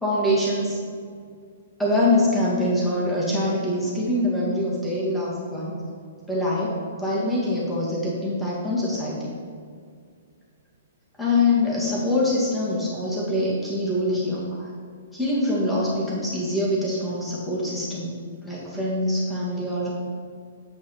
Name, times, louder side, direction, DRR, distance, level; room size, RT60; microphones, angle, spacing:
voice 1, 0.0-0.8 1.8-5.8 6.3-9.2 11.2-14.7 15.1-18.1 18.4-19.9, left 1 dB, 5° left, -8 dB, 2.1 m, -24 dB
8.2 x 4.8 x 5.7 m, 2.1 s
figure-of-eight pair, 120°, 0 cm